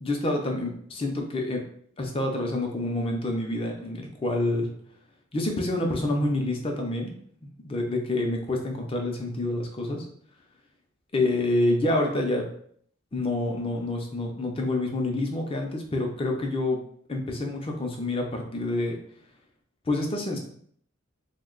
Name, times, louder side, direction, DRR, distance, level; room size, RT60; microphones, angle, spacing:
voice 1, 0.0-1.6 2.0-4.7 5.3-7.2 7.4-10.0 11.1-12.4 13.1-16.8 17.1-19.0 19.9-20.4, left 2 dB, 25° left, 2 dB, 0.5 m, -27 dB
2.7 x 2.1 x 3.7 m, 0.63 s
head